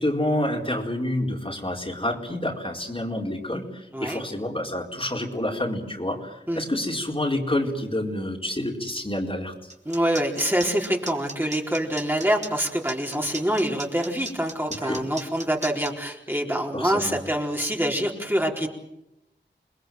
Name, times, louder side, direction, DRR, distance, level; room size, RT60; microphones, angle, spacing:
voice 1, 0.0-9.7 14.8-15.0 16.7-17.3, left 1 dB, 30° left, 0 dB, 4.6 m, -28 dB
sound 1, 9.7-15.9, right 2 dB, 35° right, 3.7 m, -37 dB
voice 2, 9.9-18.7, equal, 10° right, 0 dB, 4.3 m, -25 dB
28.5 x 20.5 x 7.8 m, 0.87 s
wide cardioid pair, 40°, 19 cm